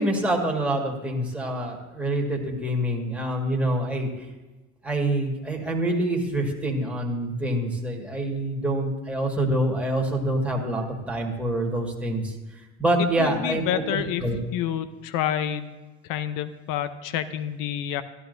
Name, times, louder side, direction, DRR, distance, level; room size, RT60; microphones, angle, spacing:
voice 1, 0.0-4.1 4.8-12.3 12.8-14.4, right 1 dB, 5° right, -1 dB, 1.8 m, -26 dB
voice 2, 13.0-14.2 14.5-15.8 16.1-18.0, left 10 dB, 70° left, 12 dB, 0.8 m, -28 dB
13.0 x 11.5 x 2.7 m, 1.2 s
supercardioid pair, 75°, 35 cm